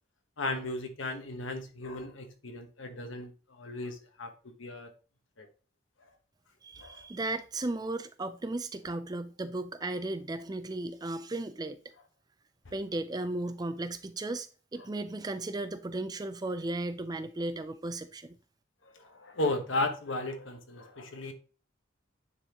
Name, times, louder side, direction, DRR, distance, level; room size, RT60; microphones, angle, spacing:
voice 1, 0.4-4.3 4.6-4.9 5.4-5.5 6.8-7.1 18.8-21.3, left 2 dB, 85° left, 1.2 m, -35 dB
voice 2, 6.6-11.8 12.7-18.4, right 2 dB, 20° right, 0.4 m, -35 dB
9.8 x 4.0 x 2.9 m
head